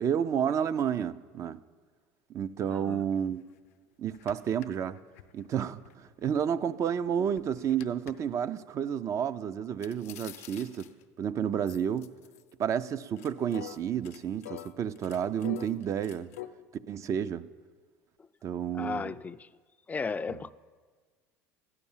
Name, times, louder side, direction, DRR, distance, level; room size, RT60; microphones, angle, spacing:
voice 1, 0.0-1.6 2.3-3.4 4.0-5.0 5.3-10.9 11.2-12.1 12.6-16.3 16.9-17.4 18.4-19.1, right 8 dB, 45° right, 0.5 m, -31 dB
voice 2, 2.7-3.0 18.2-18.3 18.7-19.5 19.9-20.5, left 4 dB, 20° left, 0.4 m, -35 dB
sound 1, 3.1-3.2 3.6-3.7 4.1-6.4 6.8-8.1 9.8-11.1 11.7-12.7 13.0-16.5, left 14 dB, 90° left, 0.6 m, -46 dB
12.5 x 9.7 x 7.2 m
supercardioid pair, 90°, 8 cm